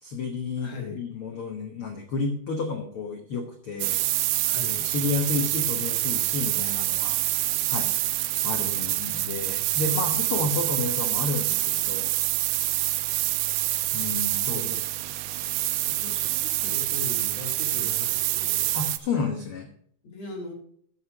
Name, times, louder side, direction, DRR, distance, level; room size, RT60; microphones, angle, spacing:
voice 1, 0.0-4.0 4.8-7.4 7.7-7.9 8.4-12.1 13.9-14.8 15.0-15.1 18.7-19.7, left 4 dB, 85° left, 3 dB, 1.2 m, -31 dB
voice 2, 0.6-1.0 4.5-4.8 13.9-14.8 15.8-18.7 20.0-20.5, left 4 dB, 45° left, 0 dB, 3.1 m, -39 dB
sound 1, 3.8-19.0, right 16 dB, 80° right, 2.3 m, -26 dB
13.5 x 6.6 x 4.8 m, 0.63 s
omnidirectional pair, 4.3 m